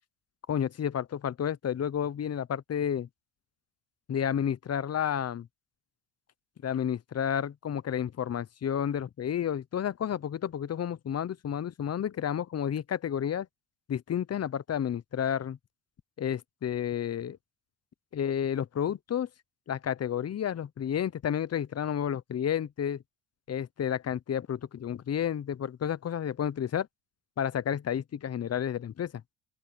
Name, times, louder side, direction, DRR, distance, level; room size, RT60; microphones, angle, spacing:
voice 1, 0.5-3.1 4.1-5.5 6.6-13.5 13.9-15.6 16.2-17.4 18.1-19.3 19.7-23.0 23.5-26.9 27.4-29.1, left 9 dB, 35° left, 0.9 m, -31 dB
open air
supercardioid pair, 90°, 42 cm